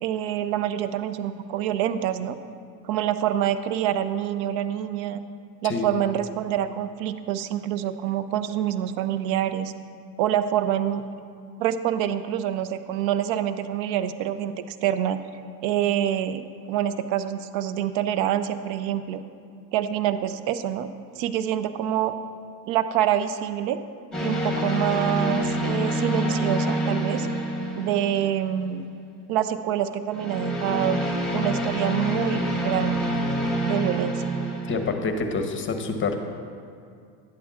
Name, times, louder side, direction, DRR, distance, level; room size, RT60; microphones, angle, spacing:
voice 1, 0.0-2.4 2.9-5.2 5.6-9.7 10.2-11.0 11.6-15.2 15.6-19.2 19.7-20.9 21.2-22.1 22.7-23.8 24.2-27.3 27.7-28.8 29.3-31.0 31.3-33.1 33.7-34.2, right 11 dB, 65° right, 12 dB, 0.6 m, -26 dB
sound 1, 24.1-28.6 30.1-34.9, right 1 dB, ahead, 1.5 m, -27 dB
voice 2, 34.7-36.2, left 4 dB, 25° left, 5 dB, 0.8 m, -27 dB
11.5 x 8.5 x 2.4 m, 2.3 s
supercardioid pair, 95°, 49 cm